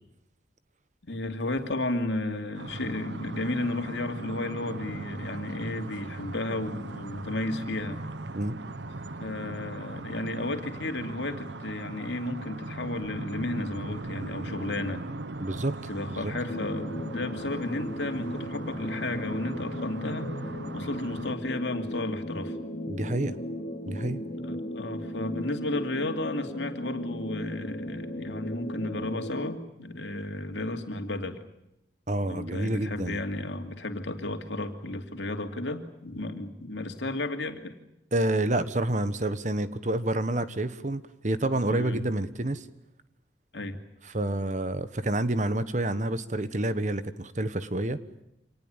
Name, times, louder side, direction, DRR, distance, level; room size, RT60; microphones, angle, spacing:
voice 1, 1.0-8.0 9.2-15.1 15.9-20.3 20.7-22.6 24.4-31.4 32.2-37.8 41.7-42.0 43.5-43.8, left 2 dB, 85° left, 5 dB, 2.6 m, -33 dB
sound 1, 2.5-21.3, right 2 dB, 85° right, 1.1 m, -39 dB
voice 2, 15.4-16.3 22.9-23.4 23.9-24.3 32.1-33.2 38.1-42.7 44.0-48.0, right 1 dB, 45° right, 13 dB, 1.3 m, -28 dB
sound 2, 16.5-29.5, left 1 dB, 50° left, 2.6 m, -37 dB
26.5 x 19.5 x 9.1 m, 0.85 s
head